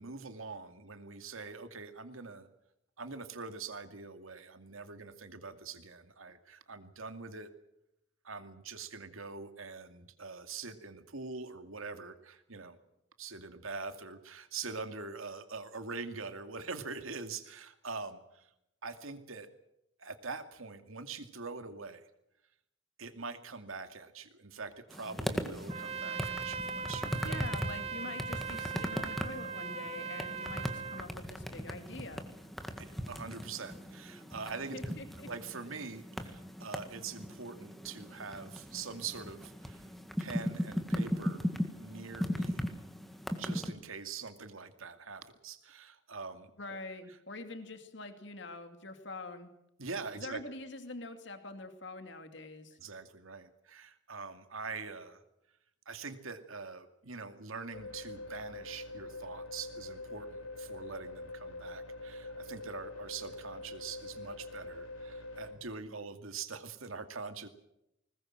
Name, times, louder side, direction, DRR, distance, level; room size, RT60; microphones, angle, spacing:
voice 1, 0.0-2.5 3.0-7.5 8.2-12.8 13.2-18.5 18.8-19.5 20.0-22.1 23.0-27.4 32.8-35.0 35.3-39.8 40.2-41.5 41.8-42.6 43.4-46.8 49.8-50.4 52.8-55.2 55.9-67.5, right 4 dB, 85° right, 8 dB, 2.3 m, -44 dB
sound 1, 24.9-43.7, equal, ahead, 1.8 m, -38 dB
Trumpet, 25.7-31.1, right 6 dB, 30° right, 0.8 m, -39 dB
voice 2, 27.2-32.2 34.7-35.3 46.6-49.5 50.2-52.8, left 2 dB, 55° left, 8 dB, 2.5 m, -45 dB
sound 2, 57.7-65.5, left 2 dB, 75° left, 5.3 m, -44 dB
21.0 x 20.0 x 7.6 m, 0.82 s
head